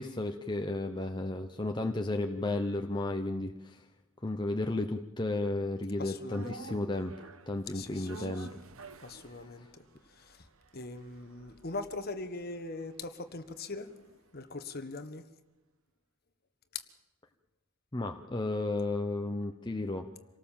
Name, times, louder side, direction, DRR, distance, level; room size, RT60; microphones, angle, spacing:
voice 1, 0.0-3.8 4.2-8.5 17.9-20.0, left 2 dB, 20° left, 4 dB, 0.8 m, -33 dB
voice 2, 6.0-6.8 7.7-8.6 9.0-10.5 10.7-14.0 14.3-15.3 16.7-16.8, left 3 dB, 45° left, 9 dB, 1.4 m, -41 dB
sound 1, 6.3-14.6 14.9-15.0, right 4 dB, 70° right, 1.2 m, -51 dB
27.0 x 18.5 x 7.3 m, 1.0 s
head